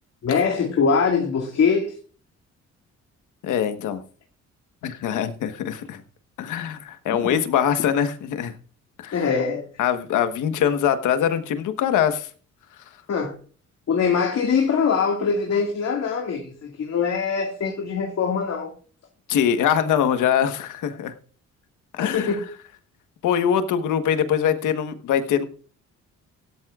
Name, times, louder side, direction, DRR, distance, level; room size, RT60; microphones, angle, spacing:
voice 1, 0.2-1.9 7.1-7.4 9.1-9.7 13.1-13.4 13.9-18.7 22.0-22.4, left 6 dB, 55° left, 2.1 m, -23 dB
voice 2, 3.4-4.0 4.8-6.0 6.4-8.5 9.0-9.3 9.8-12.3 19.3-21.1 21.9-22.4 23.2-25.4, left 9 dB, 85° left, 1.3 m, -23 dB
16.5 x 13.0 x 2.4 m
cardioid pair, 90°, 30 cm